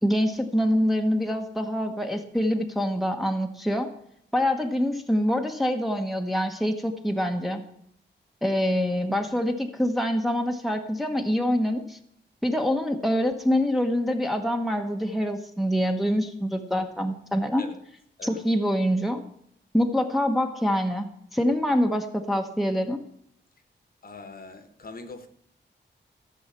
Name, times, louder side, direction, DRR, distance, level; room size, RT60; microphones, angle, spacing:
voice 1, 0.0-3.9 4.3-7.6 8.4-12.0 12.4-17.6 18.2-19.2 19.7-23.0, equal, ahead, 1.1 m, -25 dB
voice 2, 24.0-25.3, left 3 dB, 50° left, 1.3 m, -42 dB
14.0 x 7.2 x 5.7 m
wide cardioid pair, 155°, 19 cm